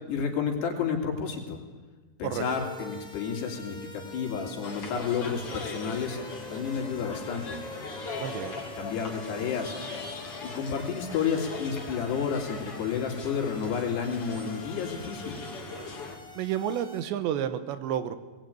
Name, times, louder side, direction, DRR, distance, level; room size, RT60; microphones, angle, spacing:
voice 1, 0.1-1.6 2.2-6.2 6.5-7.6 8.8-9.7 10.4-15.5, left 6 dB, 70° left, 2 dB, 4.8 m, -31 dB
sound 1, 2.3-17.0, left 1 dB, 5° left, 0.7 m, -45 dB
sound 2, 4.6-16.1, left 3 dB, 35° left, 3.0 m, -40 dB
voice 2, 8.2-8.6 16.4-18.2, right 10 dB, 80° right, 11 dB, 3.3 m, -30 dB
20.0 x 19.5 x 9.2 m, 1.3 s
omnidirectional pair, 5.1 m